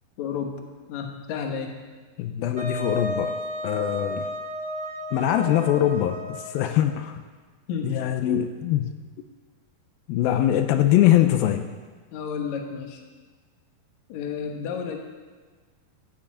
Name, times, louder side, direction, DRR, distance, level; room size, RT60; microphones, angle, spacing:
voice 1, 0.2-0.6 0.9-1.7 7.7-8.1 12.1-13.0 14.1-15.0, left 6 dB, 60° left, 3 dB, 2.2 m, -31 dB
voice 2, 2.2-3.3 3.6-4.3 5.1-7.2 7.8-8.9 10.1-11.7, left 12 dB, 85° left, 7 dB, 2.4 m, -22 dB
Wind instrument woodwind instrument, 2.6-6.9, equal, 30° right, 1.3 m, -33 dB
13.0 x 6.9 x 8.8 m, 1.4 s
omnidirectional pair, 4.3 m